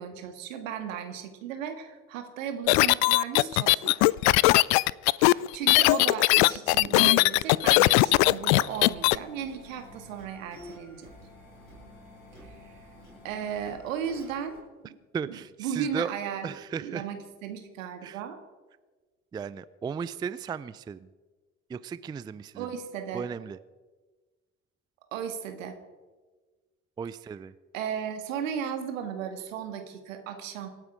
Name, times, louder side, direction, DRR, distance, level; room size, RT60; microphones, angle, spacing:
voice 1, 0.0-4.1 5.3-11.1 12.4-12.8 13.2-14.9 15.2-16.5 16.7-18.4 22.6-23.3 25.1-25.8 27.7-30.7, right 8 dB, 70° right, 6 dB, 2.0 m, -36 dB
sound 1, 2.7-9.2, left 22 dB, 55° left, 0.5 m, -20 dB
sound 2, 7.1-14.6, left 1 dB, 85° left, 6.7 m, -49 dB
voice 2, 14.8-16.1 16.4-17.1 18.0-18.2 19.3-21.1 21.7-22.7 23.1-23.6 27.0-27.5, right 6 dB, 10° right, 16 dB, 0.4 m, -35 dB
25.5 x 9.2 x 4.9 m, 1.3 s
figure-of-eight pair, 60°, 41 cm